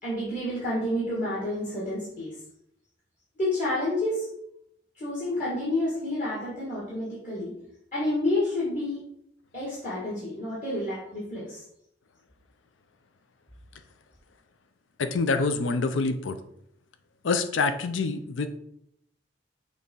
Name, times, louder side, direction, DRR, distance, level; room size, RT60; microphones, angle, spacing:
voice 1, 0.0-2.3 3.4-4.2 5.0-7.6 7.9-9.0 9.5-11.6, left 1 dB, 40° left, -8 dB, 2.2 m, -29 dB
voice 2, 15.0-16.4 17.2-18.5, left 4 dB, 85° left, 10 dB, 0.5 m, -26 dB
6.5 x 3.5 x 5.5 m, 0.74 s
head